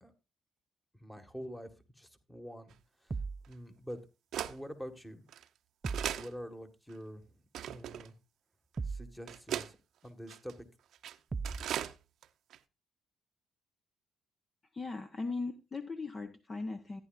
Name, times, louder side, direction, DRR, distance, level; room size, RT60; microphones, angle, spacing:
voice 1, 1.0-2.7 3.0-3.2 3.5-4.0 4.4-5.2 6.2-7.4 7.7-8.1 8.8-9.8 10.0-10.5 11.5-11.6, equal, 5° left, 7 dB, 1.9 m, -46 dB
sound 1, 2.7-2.8 3.5-3.6 4.3-4.6 5.3-5.4 5.8-6.3 6.9-7.0 7.5-8.1 8.7-8.8 9.3-9.7 10.3-10.5 10.9-11.2 11.4-11.9 12.2-12.3 12.5-12.6, right 10 dB, 75° right, 0.7 m, -38 dB
sound 2, 3.1-3.5 5.8-6.2 8.8-9.1 11.3-11.7, right 4 dB, 30° right, 0.5 m, -37 dB
voice 2, 14.7-17.0, left 3 dB, 35° left, 8 dB, 1.1 m, -38 dB
14.0 x 10.0 x 2.5 m, 0.26 s
cardioid pair, 90°, 0 cm